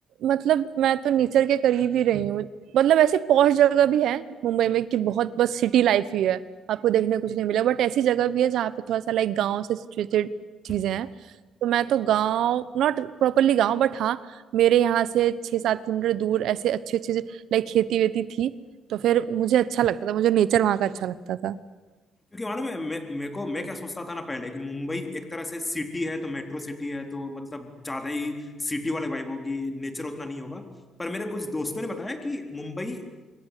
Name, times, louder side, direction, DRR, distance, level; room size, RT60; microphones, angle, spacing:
voice 1, 0.2-2.5 2.7-6.4 6.7-10.3 10.6-11.1 11.6-14.2 14.5-18.5 18.9-21.6, right 11 dB, 80° right, 17 dB, 1.0 m, -23 dB
voice 2, 22.3-30.7 31.0-33.1, left 2 dB, 20° left, 6 dB, 3.9 m, -32 dB
27.0 x 23.5 x 8.5 m, 1.2 s
cardioid pair, 90°, 0 cm